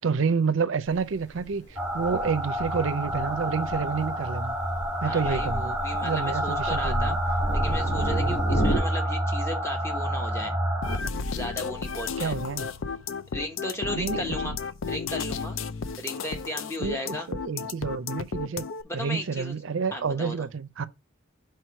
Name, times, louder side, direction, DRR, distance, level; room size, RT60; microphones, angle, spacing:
voice 1, 0.0-4.6 5.0-5.7 6.0-7.2 12.2-12.6 14.0-14.6 16.8-18.6 18.9-20.9, right 5 dB, 70° right, 0.5 m, -29 dB
Thunder, 0.9-8.8, right 1 dB, 55° left, 2.7 m, -32 dB
sound 1, 1.8-11.0, right 1 dB, 10° right, 1.5 m, -28 dB
voice 2, 5.0-7.2 7.5-10.5 11.3-12.3 13.3-14.5 14.9-15.6 16.0-17.3 18.8-19.5 19.9-20.4, left 1 dB, 15° left, 1.0 m, -35 dB
sound 2, 10.8-18.8, left 5 dB, 75° left, 0.5 m, -33 dB
4.7 x 4.7 x 4.5 m
head